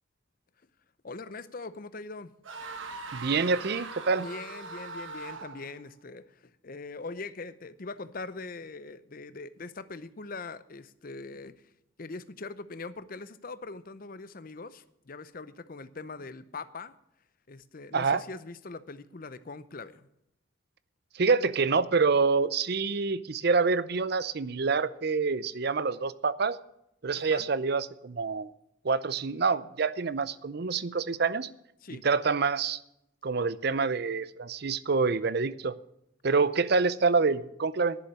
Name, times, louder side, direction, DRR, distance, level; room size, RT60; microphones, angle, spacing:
voice 1, 1.0-2.3 4.2-11.7 12.0-16.9 17.5-20.1 27.2-27.5 31.8-32.1, left 3 dB, 45° left, 14 dB, 0.7 m, -42 dB
sound 1, 2.4-5.8, right 4 dB, 75° right, 1.3 m, -41 dB
voice 2, 3.1-4.3 17.9-18.2 21.2-26.6 27.0-28.5 28.8-31.5 32.0-32.8 33.2-35.7 36.2-38.0, right 4 dB, 55° right, 17 dB, 0.6 m, -26 dB
11.0 x 7.1 x 9.6 m, 0.79 s
head